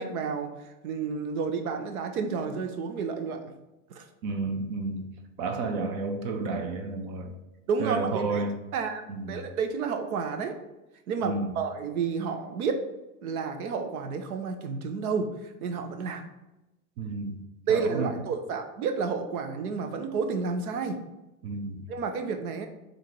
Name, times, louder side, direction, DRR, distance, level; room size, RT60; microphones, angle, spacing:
voice 1, 0.0-3.4 3.9-4.1 7.7-8.5 8.7-10.5 11.1-12.8 13.2-16.2 17.7-21.0 21.9-22.7, right 5 dB, 70° right, 6 dB, 0.8 m, -30 dB
voice 2, 4.2-5.1 5.4-7.4 7.8-8.5 9.1-9.5 11.2-11.5 17.0-17.4 17.7-18.1 21.4-21.9, right 3 dB, 40° right, 5 dB, 0.6 m, -31 dB
3.6 x 2.6 x 4.5 m, 0.98 s
hypercardioid pair, 110°, 45 cm